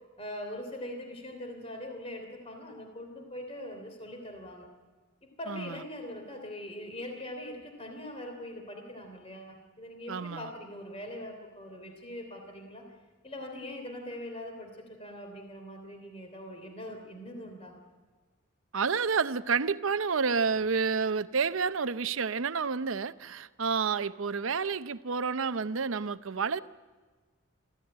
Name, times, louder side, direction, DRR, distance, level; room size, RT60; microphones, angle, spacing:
voice 1, 0.2-4.7 5.2-12.9 13.2-17.8, left 1 dB, 30° left, 3.2 m, -42 dB
voice 2, 5.5-5.8 10.1-10.5 18.7-26.6, right 5 dB, 75° right, 0.7 m, -29 dB
23.5 x 15.0 x 9.8 m
head